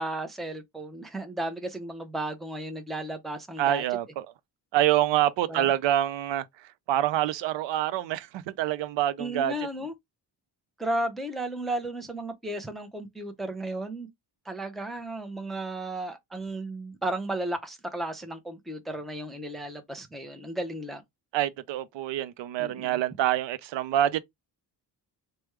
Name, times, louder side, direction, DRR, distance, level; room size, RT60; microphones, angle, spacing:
voice 1, 0.0-3.8 5.5-5.7 9.2-9.9 10.8-14.1 14.5-21.0 22.6-23.0, right 1 dB, ahead, 0.6 m, -34 dB
voice 2, 3.6-4.3 4.7-6.5 6.9-9.5 21.3-24.2, right 12 dB, 75° right, 0.5 m, -26 dB
3.4 x 2.2 x 3.1 m
cardioid pair, 100°, 44 cm